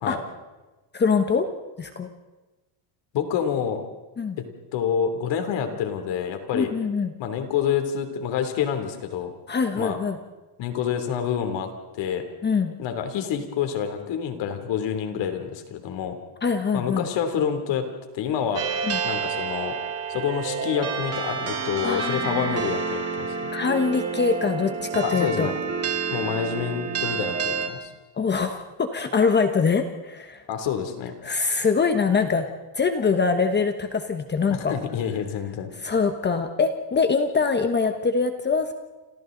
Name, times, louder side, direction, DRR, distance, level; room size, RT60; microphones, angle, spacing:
voice 1, 0.9-1.5 1.8-2.1 4.2-4.4 6.5-7.1 9.5-10.2 12.4-12.7 16.4-17.1 18.8-19.0 21.8-22.6 23.5-25.5 28.1-30.4 31.2-32.5 32.7-34.7 35.8-38.7, left 5 dB, 20° left, 7 dB, 1.1 m, -23 dB
voice 2, 3.1-3.8 4.4-4.5 4.7-6.7 7.2-9.3 9.7-10.0 10.6-12.2 12.8-16.2 16.7-17.9 18.1-18.6 19.0-19.8 20.1-23.5 25.0-25.6 26.1-27.9 30.5-31.1 34.5-35.7, left 8 dB, 60° left, 7 dB, 3.2 m, -27 dB
sound 1, 18.6-27.7, right 5 dB, 30° right, 2.0 m, -29 dB
29.0 x 27.5 x 3.9 m, 1.1 s
cardioid pair, 160°, 49 cm